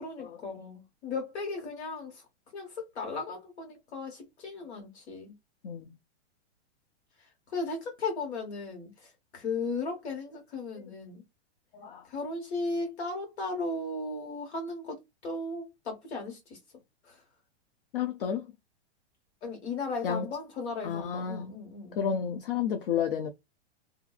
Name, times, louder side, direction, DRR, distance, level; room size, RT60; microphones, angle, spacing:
voice 1, 0.0-2.2 2.5-5.3 7.2-11.2 12.1-15.0 15.2-16.6 17.0-17.2 19.4-22.1, left 3 dB, 70° left, 1.3 m, -36 dB
voice 2, 11.7-12.1 17.9-18.5 20.0-20.3 20.8-21.5 21.9-23.3, left 7 dB, 50° left, 0.4 m, -31 dB
2.6 x 2.3 x 2.3 m
supercardioid pair, 175°, 35 cm